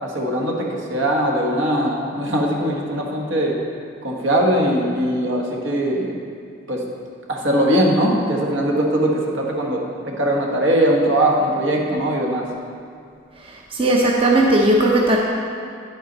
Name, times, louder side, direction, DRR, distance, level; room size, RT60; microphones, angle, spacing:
voice 1, 0.0-3.6 4.0-6.1 6.7-6.8 7.3-12.5, right 1 dB, 65° right, -1 dB, 1.5 m, -20 dB
voice 2, 13.7-15.2, right 1 dB, 30° right, -2 dB, 0.7 m, -16 dB
10.5 x 8.4 x 4.0 m, 2.3 s
head